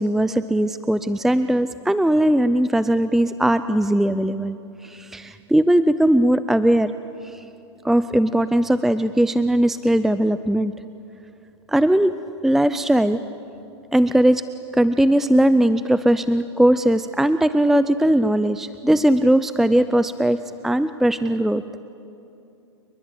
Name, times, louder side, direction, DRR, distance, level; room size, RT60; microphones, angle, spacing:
voice 1, 0.0-4.6 4.8-6.9 7.2-7.3 7.8-10.7 11.7-12.1 12.4-13.2 13.9-14.4 14.7-21.6, right 1 dB, ahead, 13 dB, 0.5 m, -19 dB
29.5 x 21.5 x 8.8 m, 2.8 s
hypercardioid pair, 115°, 15 cm